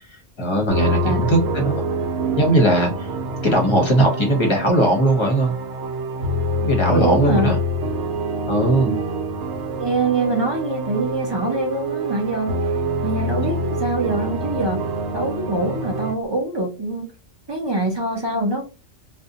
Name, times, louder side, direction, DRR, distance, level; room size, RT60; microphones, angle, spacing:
voice 1, 0.4-1.7 2.4-2.9 3.4-5.6 6.6-7.6 8.5-9.0, right 1 dB, 30° left, 0.6 m, -18 dB
sound 1, 0.7-16.1, right 1 dB, 70° right, 0.8 m, -26 dB
voice 2, 6.9-7.5 8.9-9.0 9.8-12.6 13.0-14.9 15.1-17.1 17.5-18.7, right 2 dB, 45° right, 0.3 m, -24 dB
2.5 x 2.1 x 2.7 m
omnidirectional pair, 1.3 m